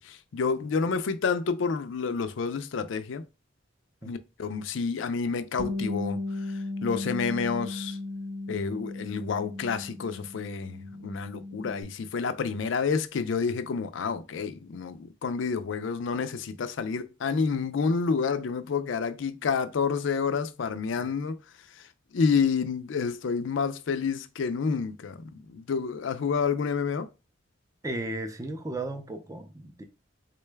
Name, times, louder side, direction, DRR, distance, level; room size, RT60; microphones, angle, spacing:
voice 1, 0.3-3.2 4.0-6.2 6.8-8.0 8.5-10.8 11.0-21.3 22.1-25.2 25.5-27.1, left 5 dB, 70° left, 0.4 m, -29 dB
Bass guitar, 5.6-11.8, left 2 dB, 35° right, 0.8 m, -36 dB
voice 2, 27.8-29.8, right 2 dB, 15° right, 0.4 m, -35 dB
3.8 x 2.2 x 3.3 m
head